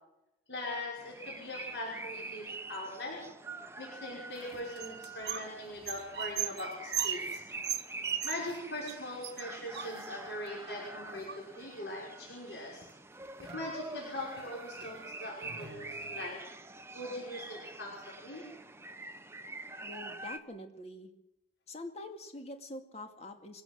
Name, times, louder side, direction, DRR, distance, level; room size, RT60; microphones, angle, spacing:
voice 1, 0.5-3.2 3.8-7.4 8.2-12.9 13.4-16.4 16.9-18.4, left 1 dB, 75° left, -3 dB, 6.0 m, -41 dB
sound 1, 1.0-20.4, right 3 dB, 15° right, 1.0 m, -46 dB
sound 2, 4.4-5.5 5.8-8.6 8.9-9.0 9.2-10.4 11.0-11.7 12.8-12.9 13.2-13.7 14.2-14.4 14.8-14.9 15.4-16.2, right 9 dB, 60° right, 1.3 m, -38 dB
voice 2, 19.8-21.1 21.7-23.6, left 1 dB, 35° left, 5 dB, 2.5 m, -45 dB
24.0 x 16.0 x 7.8 m, 0.89 s
head